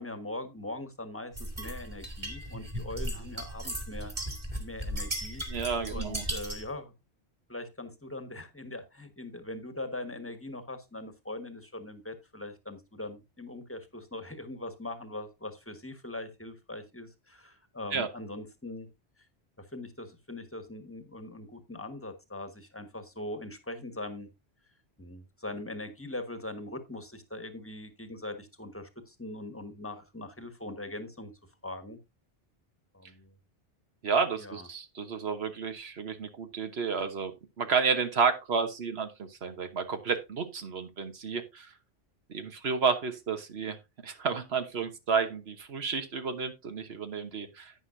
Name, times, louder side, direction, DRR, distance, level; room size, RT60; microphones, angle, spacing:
voice 1, 0.0-4.1 4.6-5.4 5.9-6.9 7.5-18.9 19.2-19.3 19.6-24.3 25.0-31.3 31.6-32.0 32.9-33.3 34.4-34.7, left 2 dB, 10° left, 1.4 m, -41 dB
sound 1, 1.4-6.7, right 1 dB, 25° right, 2.3 m, -36 dB
voice 2, 5.5-6.2 17.9-18.1 34.0-37.3 37.6-41.7 42.3-43.8 44.0-47.7, right 5 dB, 75° right, 1.3 m, -31 dB
11.0 x 9.3 x 2.6 m
omnidirectional pair, 1.1 m